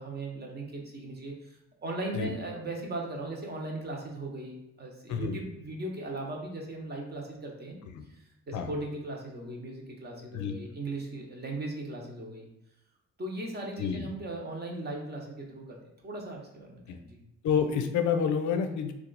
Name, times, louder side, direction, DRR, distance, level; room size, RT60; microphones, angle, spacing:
voice 1, 0.0-7.8 8.1-12.5 13.2-15.8 16.0-17.2, right 2 dB, 35° right, 0 dB, 0.9 m, -38 dB
voice 2, 5.1-5.4 7.9-8.0 8.5-8.7 10.3-10.5 13.8-14.1 16.9-17.0 17.4-18.9, left 7 dB, 75° left, 6 dB, 0.5 m, -28 dB
2.8 x 2.4 x 3.9 m, 0.88 s
cardioid pair, 90°, 30 cm